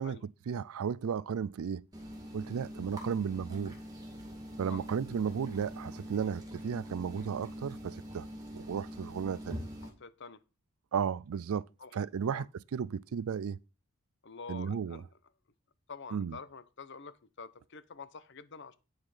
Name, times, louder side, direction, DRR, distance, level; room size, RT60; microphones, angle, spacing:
voice 1, 0.0-1.9 2.3-3.8 4.6-8.3 8.5-9.6 10.9-11.7 11.9-13.6 14.5-15.0 16.1-16.4, right 7 dB, 80° right, 0.4 m, -34 dB
sound 1, 1.9-9.9, equal, 15° right, 2.2 m, -44 dB
voice 2, 9.8-10.4 11.8-12.0 12.2-12.5 14.2-15.1 15.9-18.7, left 4 dB, 55° left, 0.8 m, -47 dB
9.2 x 5.7 x 4.9 m
head